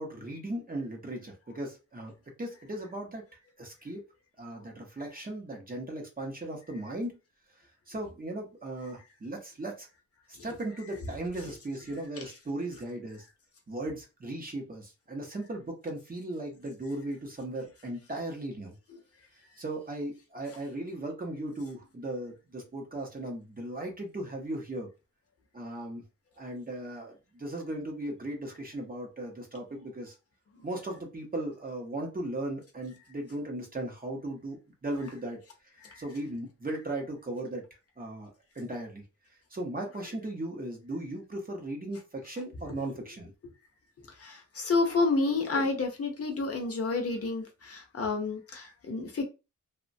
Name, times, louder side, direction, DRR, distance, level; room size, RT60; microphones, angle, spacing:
voice 1, 0.0-2.1 2.4-3.2 3.6-4.0 4.4-7.1 7.9-9.9 10.4-13.2 13.7-18.7 19.6-24.9 25.5-26.0 26.4-30.1 30.6-35.4 36.0-37.6 38.0-39.0 39.5-43.3, right 1 dB, 30° right, 0.7 m, -37 dB
voice 2, 44.1-49.2, left 3 dB, 45° left, 0.6 m, -30 dB
3.0 x 2.1 x 2.5 m
wide cardioid pair, 170°, 32 cm